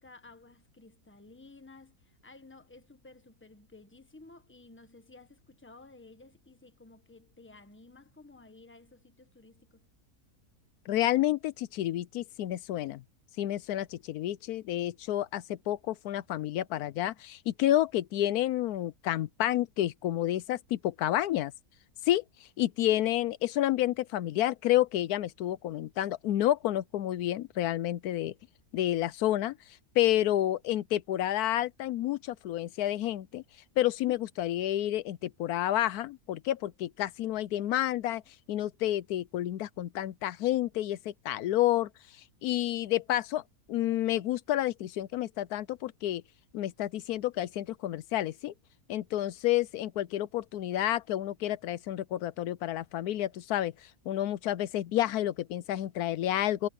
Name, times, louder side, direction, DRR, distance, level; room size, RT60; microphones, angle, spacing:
voice 1, 0.0-9.9, left 3 dB, 10° left, 1.2 m, -54 dB
voice 2, 10.9-13.0 13.4-21.5 22.1-28.3 28.7-29.6 30.0-33.4 33.8-38.2 38.5-41.9 42.4-43.4 43.7-46.2 46.5-48.5 48.9-56.7, left 13 dB, 80° left, 1.1 m, -30 dB
omnidirectional pair, 1.6 m